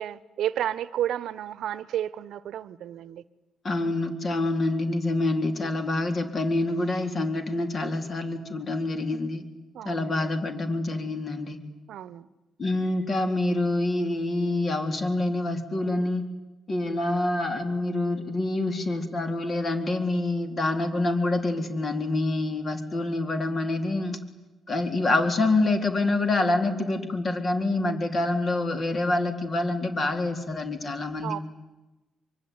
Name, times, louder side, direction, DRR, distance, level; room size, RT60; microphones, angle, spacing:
voice 1, 0.0-3.2 9.7-10.3 11.9-12.3 31.2-31.4, right 11 dB, 75° right, 1.0 m, -32 dB
voice 2, 3.6-9.4 9.8-11.6 12.6-16.3 16.7-24.2 24.7-31.4, left 2 dB, 40° left, 4.0 m, -26 dB
24.5 x 24.0 x 9.7 m
cardioid pair, 90°, 0 cm